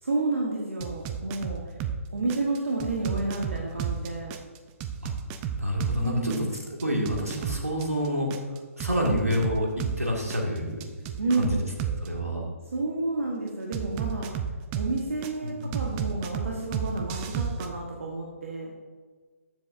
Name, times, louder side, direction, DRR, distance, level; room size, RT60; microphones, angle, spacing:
voice 1, 0.0-1.6 2.1-4.3 6.0-6.5 9.1-9.2 11.2-11.6 12.7-14.3 14.7-18.7, right 3 dB, 60° right, -2 dB, 1.3 m, -30 dB
sound 1, 0.8-2.0 2.3-6.0 6.3-10.0 10.3-12.1 13.7-15.3 15.7-17.7, right 8 dB, 20° right, 0.4 m, -32 dB
voice 2, 5.6-6.5 6.8-8.3 8.8-9.7 10.0-10.8 11.4-11.5 12.0-12.4, equal, 85° right, 0 dB, 1.9 m, -27 dB
13.5 x 7.4 x 2.6 m, 1.5 s
figure-of-eight pair, 130°, 8 cm